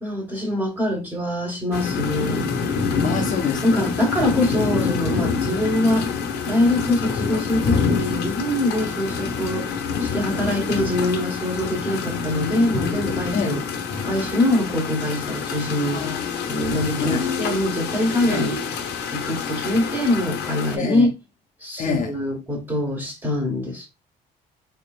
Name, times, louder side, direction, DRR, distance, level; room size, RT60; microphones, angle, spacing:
voice 1, 0.0-2.5 3.6-6.1 6.4-9.7 10.0-13.7 14.0-16.1 16.5-18.6 19.1-21.1 21.6-23.9, left 1 dB, 10° right, 1.6 m, -23 dB
sound 1, 1.7-20.8, left 5 dB, 75° left, 0.9 m, -26 dB
voice 2, 3.0-3.9 13.3-13.6 15.9-17.2 18.3-18.5 20.8-21.1 21.8-22.1, left 6 dB, 50° left, 0.8 m, -27 dB
4.0 x 3.3 x 2.5 m
cardioid pair, 110°, 17 cm